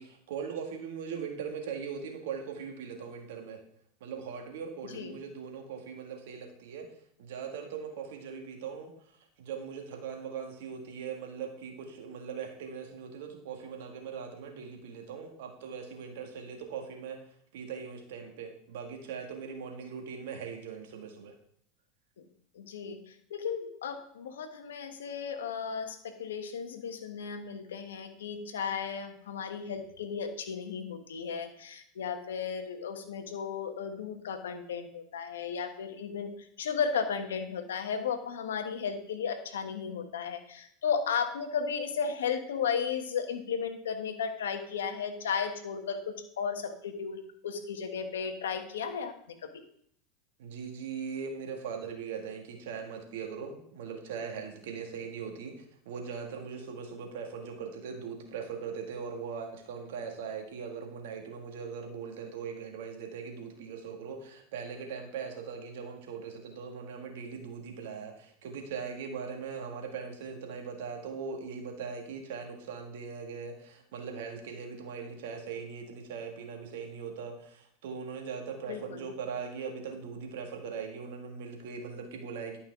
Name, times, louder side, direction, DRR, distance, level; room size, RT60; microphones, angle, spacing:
voice 1, 0.0-3.6 4.0-6.9 7.2-8.9 9.4-17.2 17.5-21.3 50.4-82.6, right 6 dB, 70° right, 3 dB, 1.8 m, -40 dB
voice 2, 22.5-36.3 36.6-49.5 78.7-79.0, left 6 dB, 80° left, 7 dB, 1.2 m, -34 dB
11.5 x 5.5 x 3.6 m, 0.66 s
hypercardioid pair, 90°, 0 cm